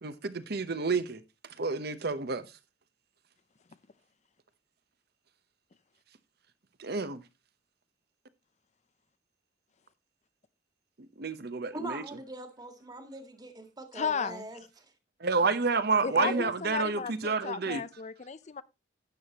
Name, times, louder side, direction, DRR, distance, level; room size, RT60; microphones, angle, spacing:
voice 1, 0.0-1.2 1.6-2.5 6.8-7.2 11.2-12.0 15.2-17.8, right 4 dB, 60° right, 1.0 m, -29 dB
voice 2, 11.7-14.6 16.0-16.4, right 2 dB, 25° right, 1.8 m, -41 dB
voice 3, 13.9-14.5 16.0-18.6, left 6 dB, 40° left, 0.6 m, -34 dB
12.0 x 8.6 x 3.0 m
head